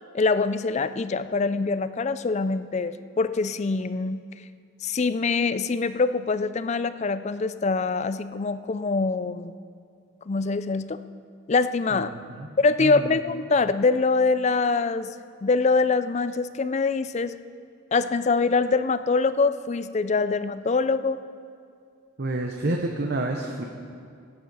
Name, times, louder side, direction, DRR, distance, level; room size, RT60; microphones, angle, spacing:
voice 1, 0.1-4.2 4.8-9.5 10.3-11.0 11.5-12.1 12.6-15.1 15.4-17.4 17.9-21.2, left 4 dB, 35° left, 13 dB, 0.4 m, -24 dB
voice 2, 11.9-12.5 12.8-13.2 22.2-23.6, right 2 dB, 50° right, 2 dB, 0.9 m, -29 dB
17.0 x 9.2 x 5.5 m, 2.3 s
head